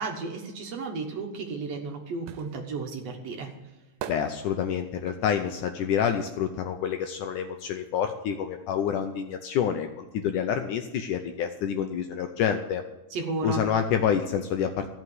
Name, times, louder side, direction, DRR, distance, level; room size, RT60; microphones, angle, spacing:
voice 1, 0.0-3.5 13.1-13.7, right 4 dB, 60° right, 2 dB, 1.9 m, -33 dB
sound 1, 1.5-7.2 7.5-9.1 9.4-9.5, right 10 dB, 80° right, 2.4 m, -44 dB
voice 2, 4.1-12.8 13.4-14.9, left 8 dB, 75° left, 6 dB, 1.9 m, -28 dB
14.0 x 6.0 x 9.4 m, 1.0 s
omnidirectional pair, 4.3 m